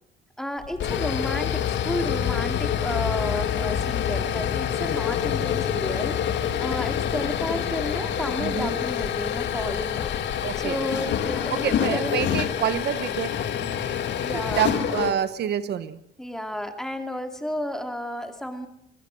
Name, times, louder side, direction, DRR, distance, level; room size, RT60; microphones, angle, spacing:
voice 1, 0.4-10.1 10.6-12.2 14.2-14.7 16.2-18.7, equal, 5° left, 6 dB, 2.5 m, -32 dB
sound 1, 0.6-15.1, left 9 dB, 75° left, 2.3 m, -26 dB
voice 2, 8.4-8.7 10.4-10.8 11.6-13.3 14.6-16.0, right 10 dB, 60° right, 13 dB, 1.1 m, -27 dB
24.0 x 23.5 x 6.4 m, 0.74 s
cardioid pair, 175°, 19 cm